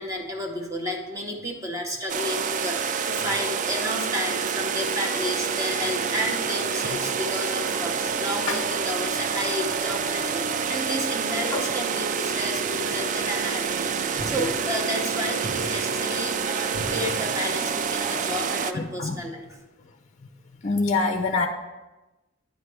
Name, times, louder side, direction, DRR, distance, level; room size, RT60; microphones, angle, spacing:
voice 1, 0.0-19.6, equal, 15° right, 1 dB, 0.8 m, -32 dB
sound 1, 2.1-18.7, right 6 dB, 40° right, 0.3 m, -27 dB
sound 2, 14.2-15.1 15.4-17.8, right 1 dB, 80° right, 1.4 m, -38 dB
voice 2, 18.7-19.2 20.6-21.5, left 3 dB, 35° left, 5 dB, 0.5 m, -25 dB
9.4 x 3.2 x 6.0 m, 1.1 s
head